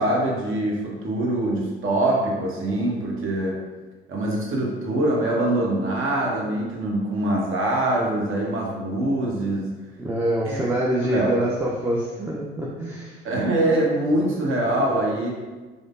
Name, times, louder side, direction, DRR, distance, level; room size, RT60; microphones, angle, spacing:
voice 1, 0.0-3.6 4.1-9.7 10.4-10.6 11.0-11.3 13.2-15.5, right 1 dB, 45° right, -2 dB, 1.0 m, -24 dB
voice 2, 10.0-13.2 14.1-14.4 14.7-14.9, right 1 dB, 5° right, -4 dB, 0.4 m, -26 dB
4.9 x 2.0 x 2.5 m, 1.3 s
figure-of-eight pair, 55°, 30 cm